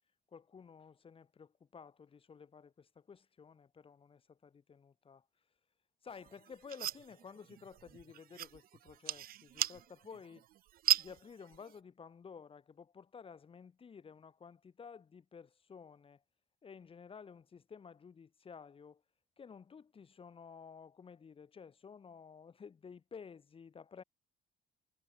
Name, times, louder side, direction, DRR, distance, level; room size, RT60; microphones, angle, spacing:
voice 1, 0.3-5.2 6.0-10.5 11.0-16.2 16.6-19.0 19.4-24.0, left 6 dB, 30° left, 1.6 m, -53 dB
sound 1, 6.1-11.8, right 13 dB, 50° right, 0.5 m, -38 dB
cardioid pair, 150°, 19 cm